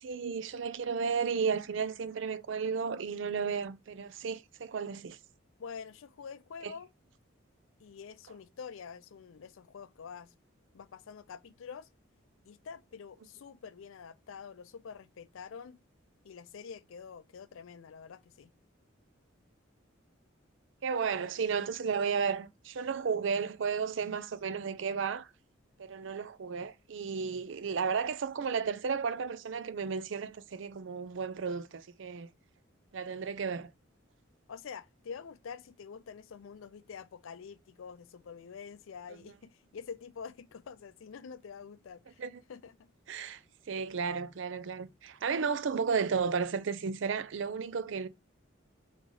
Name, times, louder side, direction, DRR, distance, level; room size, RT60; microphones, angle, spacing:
voice 1, 0.0-5.2 6.6-6.7 20.8-25.3 25.8-32.3 32.9-33.7 42.2-42.3 43.1-43.4 43.7-48.1, right 6 dB, 65° right, 0.5 m, -33 dB
voice 2, 5.6-6.9 7.8-10.3 10.7-11.9 12.4-15.8 16.2-18.5 34.5-42.2 42.5-42.9, left 6 dB, 80° left, 0.4 m, -46 dB
3.9 x 3.2 x 3.8 m
head